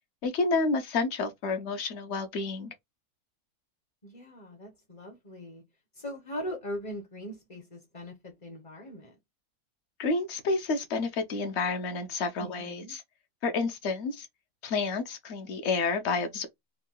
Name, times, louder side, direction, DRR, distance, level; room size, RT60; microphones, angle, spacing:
voice 1, 0.2-2.7 10.0-13.0 13.4-14.3 14.6-16.5, left 3 dB, 55° left, 0.9 m, -29 dB
voice 2, 4.0-5.6 5.9-9.2 12.4-13.0, equal, 35° left, 0.6 m, -40 dB
3.6 x 2.3 x 2.2 m
omnidirectional pair, 1.6 m